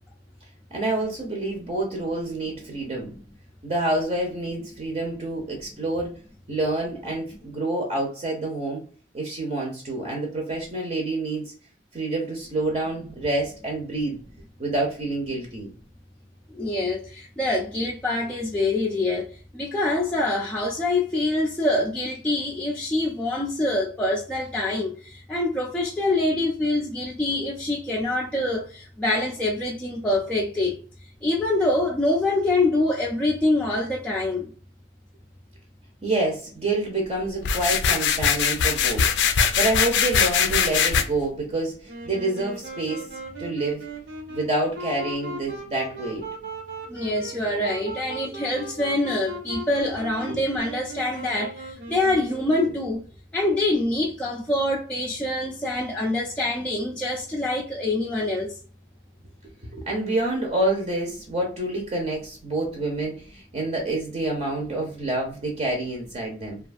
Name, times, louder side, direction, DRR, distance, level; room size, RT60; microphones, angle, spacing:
voice 1, 0.7-3.2 3.6-6.1 6.5-8.8 9.1-11.5 11.9-14.2 14.6-15.7 36.0-39.0 39.6-43.1 43.4-43.9 44.3-46.2 50.3-50.4 59.7-66.6, right 2 dB, 40° right, 0.7 m, -27 dB
voice 2, 16.5-19.3 19.5-30.8 31.2-34.5 46.9-53.0 53.3-58.6, left 2 dB, 5° left, 0.4 m, -25 dB
sound 1, 37.4-41.0, left 7 dB, 75° left, 0.4 m, -21 dB
Wind instrument woodwind instrument, 41.9-53.0, right 2 dB, 80° right, 1.0 m, -38 dB
2.6 x 2.3 x 2.5 m
head